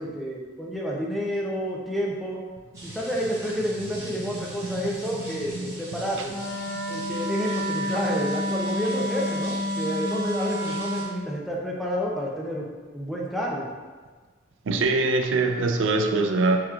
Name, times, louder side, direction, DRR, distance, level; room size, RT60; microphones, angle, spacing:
voice 1, 0.0-2.4 2.8-6.3 6.9-12.7 12.9-13.7, equal, ahead, -4 dB, 0.5 m, -30 dB
sound 1, 2.7-11.0, right 1 dB, 15° right, 1.3 m, -42 dB
voice 2, 5.5-6.0 14.7-16.6, right 3 dB, 80° right, 4 dB, 0.4 m, -24 dB
Wind instrument woodwind instrument, 6.3-11.2, left 1 dB, 60° left, 0.6 m, -29 dB
5.7 x 3.0 x 2.3 m, 1.4 s
head